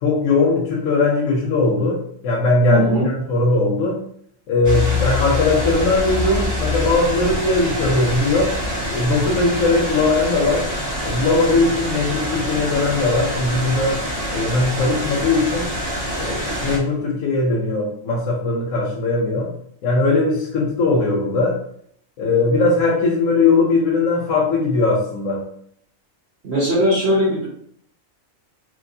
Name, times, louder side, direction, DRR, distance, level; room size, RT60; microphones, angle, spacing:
voice 1, 0.0-4.0 4.5-8.6 8.9-10.7 11.0-15.7 16.1-19.5 19.8-21.6 22.2-25.5, left 3 dB, 85° left, -2 dB, 1.1 m, -19 dB
voice 2, 2.7-3.1 26.4-27.5, equal, 55° right, -6 dB, 1.2 m, -19 dB
sound 1, 4.6-16.8, left 1 dB, 15° right, 0.9 m, -25 dB
3.1 x 2.9 x 2.7 m, 0.66 s
omnidirectional pair, 1.4 m